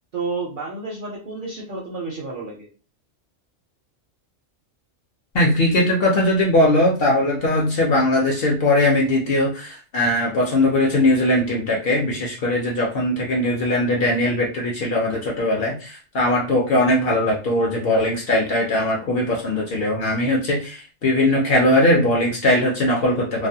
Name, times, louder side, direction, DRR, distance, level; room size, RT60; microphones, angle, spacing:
voice 1, 0.1-2.7, right 3 dB, 55° right, -2 dB, 0.6 m, -30 dB
voice 2, 5.3-23.5, left 1 dB, 60° left, -1 dB, 0.7 m, -20 dB
2.4 x 2.1 x 2.6 m, 0.36 s
omnidirectional pair, 1.4 m